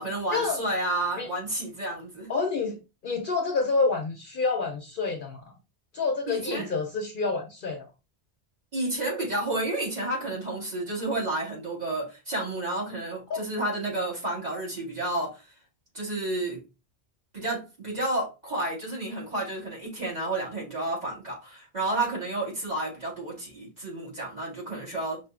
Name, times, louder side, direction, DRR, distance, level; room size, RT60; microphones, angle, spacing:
voice 1, 0.0-2.3 6.3-6.7 8.7-15.5 15.9-16.6 17.3-25.2, right 2 dB, 35° right, 2.3 m, -31 dB
voice 2, 2.3-5.5 5.9-7.9 13.3-13.4, left 4 dB, 55° left, 0.7 m, -28 dB
5.6 x 2.6 x 2.4 m
omnidirectional pair, 1.2 m